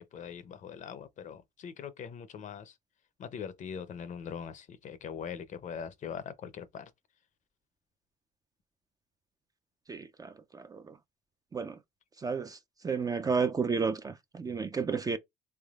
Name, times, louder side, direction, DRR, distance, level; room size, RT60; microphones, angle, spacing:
voice 1, 0.1-2.7 3.2-6.9, left 7 dB, 45° left, 0.6 m, -41 dB
voice 2, 9.9-10.9 11.5-11.8 12.2-12.6 12.8-15.2, right 5 dB, 20° right, 0.4 m, -32 dB
3.4 x 3.3 x 2.3 m
cardioid pair, 110°, 17 cm